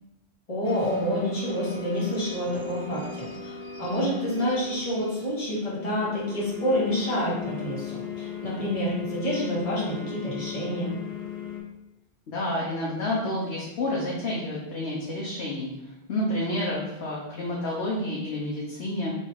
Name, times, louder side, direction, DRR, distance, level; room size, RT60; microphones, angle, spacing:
voice 1, 0.5-11.0, equal, 35° left, -8 dB, 1.6 m, -28 dB
sound 1, 0.6-11.6, left 6 dB, 60° left, 1.3 m, -37 dB
voice 2, 12.3-15.7 16.1-19.1, left 1 dB, 85° left, -4 dB, 1.1 m, -29 dB
3.5 x 3.3 x 4.2 m, 0.90 s
omnidirectional pair, 1.1 m